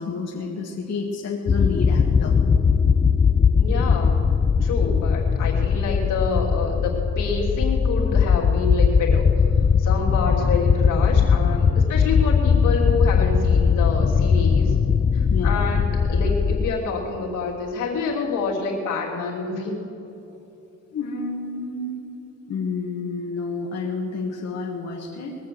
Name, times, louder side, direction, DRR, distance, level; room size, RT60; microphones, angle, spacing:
voice 1, 0.0-2.4 11.4-11.6 12.1-12.2 15.3-15.6 20.9-21.9 22.5-25.4, left 4 dB, 60° left, -2 dB, 1.7 m, -30 dB
sound 1, 1.5-16.7, left 6 dB, 25° left, 0.4 m, -19 dB
voice 2, 3.6-4.2 4.6-9.3 9.8-14.7 15.1-19.8, left 4 dB, 80° left, -2 dB, 3.1 m, -27 dB
21.0 x 7.1 x 7.6 m, 2.9 s
cardioid pair, 90°, 30 cm